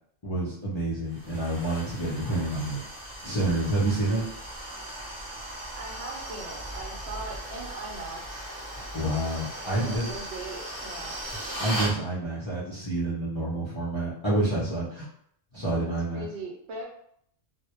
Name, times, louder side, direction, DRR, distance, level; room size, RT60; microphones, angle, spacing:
voice 1, 0.2-2.8 3.2-4.2 8.9-10.1 11.6-15.1 15.5-16.2, right 2 dB, 40° left, -8 dB, 0.4 m, -28 dB
sound 1, 1.1-12.0, right 1 dB, 30° right, 0.3 m, -38 dB
voice 2, 5.8-8.5 9.7-11.2 15.9-16.8, right 2 dB, 70° right, 0 dB, 0.9 m, -40 dB
2.1 x 2.0 x 2.8 m, 0.67 s
omnidirectional pair, 1.2 m